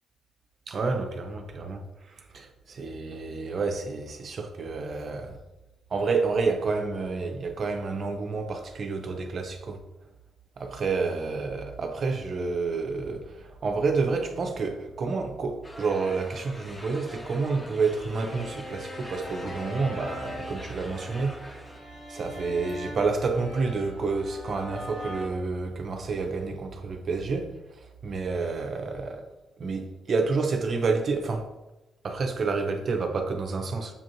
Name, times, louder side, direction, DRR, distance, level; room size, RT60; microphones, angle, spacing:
voice 1, 0.7-5.4 5.9-9.8 10.6-29.3 29.6-31.5 32.0-33.9, right 4 dB, 55° right, 0.6 m, -29 dB
sound 1, 15.6-21.8, left 1 dB, 20° left, 0.9 m, -45 dB
sound 2, 18.1-25.3, left 1 dB, 60° left, 1.4 m, -41 dB
7.0 x 2.5 x 2.8 m
hypercardioid pair, 45°, 0 cm